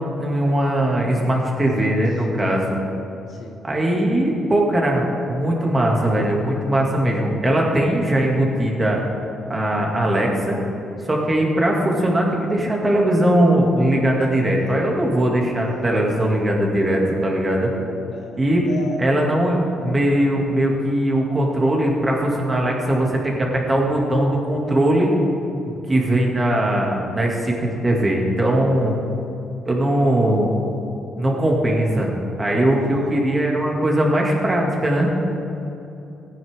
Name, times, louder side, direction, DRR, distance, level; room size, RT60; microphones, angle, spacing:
voice 1, 0.0-2.8 3.6-9.0 9.5-10.6 11.1-17.7 18.4-18.7 19.0-25.1 25.6-29.0 29.6-30.5 31.2-32.1 32.4-35.1, right 1 dB, 25° right, -1 dB, 2.5 m, -20 dB
voice 2, 1.9-2.2 2.5-2.8 3.3-3.6 14.4-14.5 18.0-19.0 31.2-31.4 32.8-33.1, left 4 dB, 60° left, 2 dB, 0.8 m, -38 dB
15.5 x 10.0 x 3.7 m, 2.9 s
cardioid pair, 90°, 0 cm